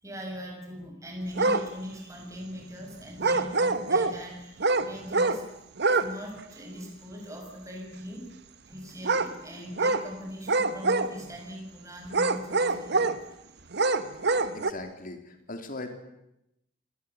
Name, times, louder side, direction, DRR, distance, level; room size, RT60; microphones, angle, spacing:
voice 1, 0.0-5.4 5.9-8.3 8.7-13.1 14.3-14.5, equal, 15° right, 1 dB, 6.6 m, -40 dB
sound 1, 1.4-1.7 3.2-4.2 4.6-5.4 5.8-6.1 6.4-6.5 9.0-9.3 9.8-10.1 10.5-11.3 12.1-13.2 13.7-14.7, right 3 dB, 55° right, 1.3 m, -25 dB
voice 2, 14.3-16.0, left 2 dB, 45° left, 6 dB, 3.6 m, -40 dB
26.5 x 20.0 x 8.5 m, 0.86 s
head